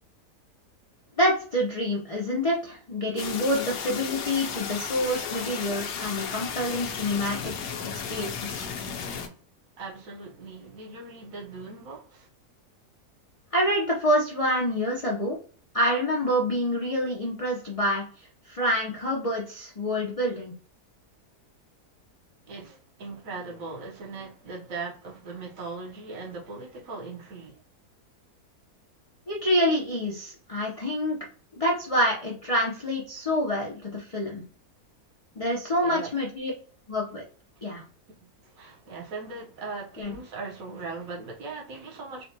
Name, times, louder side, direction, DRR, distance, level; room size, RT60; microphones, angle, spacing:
voice 1, 1.2-7.5 7.9-8.7 13.5-15.4 15.7-18.0 18.5-20.5 29.3-31.2 31.6-34.4 35.4-36.5 36.9-37.2 37.6-37.8 40.0-40.2, equal, 50° left, 0.4 m, -27 dB
sound 1, 3.2-9.3, left 6 dB, 90° left, 1.2 m, -34 dB
voice 2, 9.8-12.3 22.5-27.6 35.8-36.1 38.1-42.3, right 3 dB, 60° right, 1.2 m, -39 dB
4.0 x 2.2 x 2.7 m
omnidirectional pair, 1.7 m